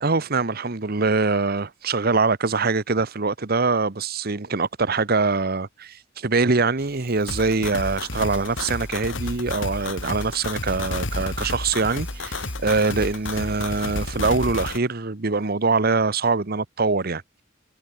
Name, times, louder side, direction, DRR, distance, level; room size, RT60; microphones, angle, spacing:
voice 1, 0.0-17.2, right 4 dB, 50° right, 1.1 m, -23 dB
Hands, 6.8-14.1, right 1 dB, 5° right, 4.1 m, -48 dB
sound 1, 7.3-14.8, left 2 dB, 80° left, 3.9 m, -31 dB
head